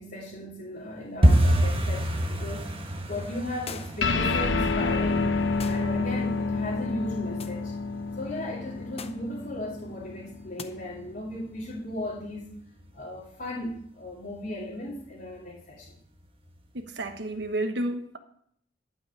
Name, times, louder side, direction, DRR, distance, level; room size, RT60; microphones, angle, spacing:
voice 1, 0.0-5.4 5.7-7.7 8.2-12.5 12.9-16.0, left 1 dB, 55° left, -6 dB, 2.4 m, -36 dB
sound 1, 1.2-11.9 12.2-12.9 13.2-13.5 13.7-14.1 14.4-14.5 15.0-15.5 15.9-16.0 16.5-16.6, equal, 30° right, 1.2 m, -29 dB
sound 2, 3.7-4.1 5.6-5.9 7.4-7.6 9.0-9.3 10.6-10.7, left 5 dB, 35° left, 0.7 m, -41 dB
sound 3, 4.0-10.8, left 3 dB, 80° left, 0.8 m, -28 dB
voice 2, 16.7-18.2, right 1 dB, 65° right, 7 dB, 1.2 m, -31 dB
11.5 x 5.5 x 7.4 m, 0.67 s
head